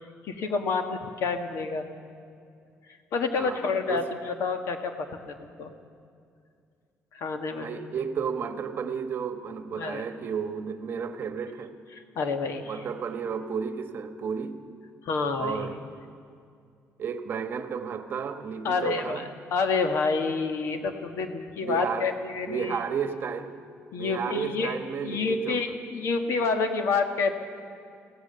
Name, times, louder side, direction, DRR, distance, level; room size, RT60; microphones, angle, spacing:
voice 1, 0.3-1.8 3.1-5.7 7.1-7.7 9.8-10.0 12.1-12.8 15.0-15.7 18.6-19.2 19.5-22.8 23.9-24.7 25.0-27.3, left 4 dB, 65° left, 6 dB, 1.6 m, -28 dB
voice 2, 7.6-11.7 12.6-14.6 15.4-15.8 17.0-19.2 21.6-22.1 22.5-23.5 24.0-25.6, right 6 dB, 40° right, 8 dB, 1.2 m, -32 dB
23.5 x 16.5 x 6.8 m, 2.3 s
cardioid pair, 155°, 5 cm